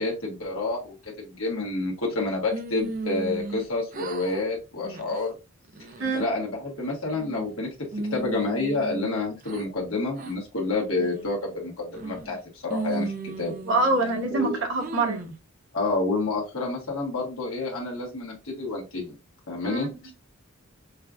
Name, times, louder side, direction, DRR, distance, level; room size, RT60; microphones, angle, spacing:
voice 1, 0.0-5.3 6.1-7.7 8.1-13.5 14.3-14.6 15.7-19.1 19.5-20.1, left 2 dB, 70° left, 1.4 m, -29 dB
sound 1, 2.5-3.7 3.9-4.4 4.8-5.2 5.7-6.3 6.8-7.5 7.9-9.7 10.2-10.3 10.9-11.3 11.9-12.4 12.7-14.3 14.8-15.4, right 2 dB, 40° right, 0.5 m, -35 dB
voice 2, 13.7-15.2 19.6-19.9, right 2 dB, 60° right, 1.3 m, -25 dB
5.5 x 2.4 x 2.4 m
head